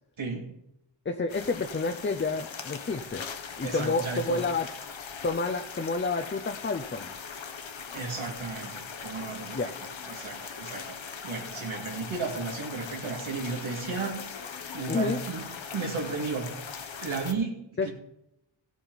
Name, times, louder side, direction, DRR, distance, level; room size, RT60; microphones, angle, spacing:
voice 1, 0.2-0.5 3.6-4.4 7.9-9.7 10.1-14.3 14.7-16.5 17.0-17.9, right 4 dB, 85° right, -1 dB, 2.5 m, -34 dB
voice 2, 1.1-3.2 3.6-4.7 5.2-7.1 9.5-9.7 14.9-15.2 17.8-17.9, left 3 dB, 25° left, 7 dB, 0.6 m, -29 dB
sound 1, 1.3-17.3, left 6 dB, 75° left, 1.2 m, -40 dB
15.5 x 8.1 x 4.1 m, 0.83 s
wide cardioid pair, 110°, 47 cm